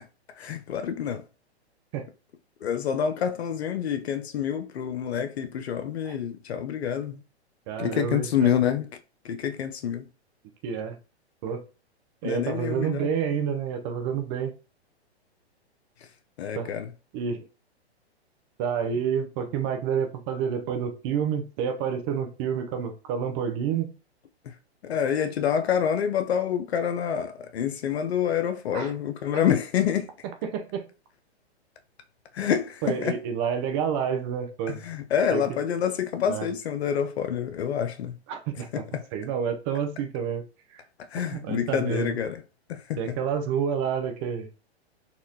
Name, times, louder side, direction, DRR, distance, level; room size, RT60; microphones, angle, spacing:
voice 1, 0.4-1.2 2.6-7.2 7.8-8.9 9.2-10.0 12.2-13.1 16.4-16.9 24.8-30.1 32.3-33.2 34.7-38.2 38.7-39.0 41.1-42.4 42.7-43.2, left 8 dB, 70° left, 0.5 m, -27 dB
voice 2, 7.7-8.5 10.6-11.0 11.4-11.6 12.2-14.5 16.5-16.7 17.1-17.4 18.6-23.9 28.7-28.9 30.4-30.9 32.8-34.8 35.3-35.4 36.2-36.5 38.3-38.9 39.1-40.4 40.7-40.8 41.3-42.2 43.0-44.5, right 7 dB, 25° right, 0.4 m, -29 dB
4.1 x 2.3 x 2.7 m
hypercardioid pair, 120°, 34 cm